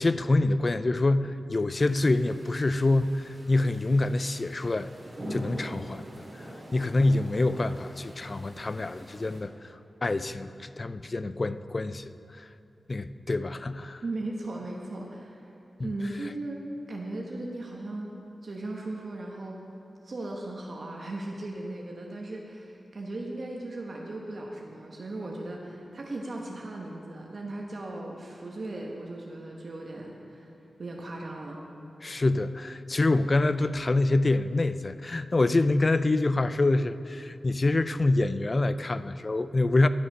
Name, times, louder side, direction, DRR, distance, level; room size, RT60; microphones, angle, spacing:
voice 1, 0.0-4.9 5.3-12.5 12.9-14.0 15.8-15.9 32.0-39.9, left 2 dB, 35° left, 13 dB, 0.3 m, -26 dB
sound 1, 1.7-9.4, equal, 35° right, 2.4 m, -44 dB
voice 2, 14.0-15.5 15.8-16.6 16.9-18.1 18.4-19.6 20.0-30.5 30.8-31.6, right 2 dB, 55° right, -1 dB, 1.0 m, -37 dB
11.0 x 6.6 x 5.4 m, 2.8 s
wide cardioid pair, 85°, 0 cm